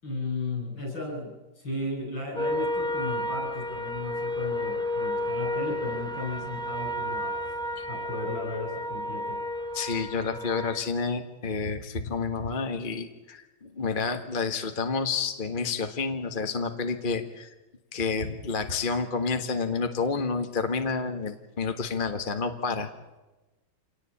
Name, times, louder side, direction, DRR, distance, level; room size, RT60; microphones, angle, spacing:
voice 1, 0.0-7.3 7.9-9.4, left 2 dB, 65° left, 0 dB, 8.9 m, -35 dB
sound 1, 2.4-10.8, left 1 dB, ahead, 2.7 m, -31 dB
voice 2, 9.7-17.5 17.9-22.9, left 4 dB, 25° left, 6 dB, 1.6 m, -29 dB
27.0 x 19.0 x 8.6 m, 1.1 s
omnidirectional pair, 2.2 m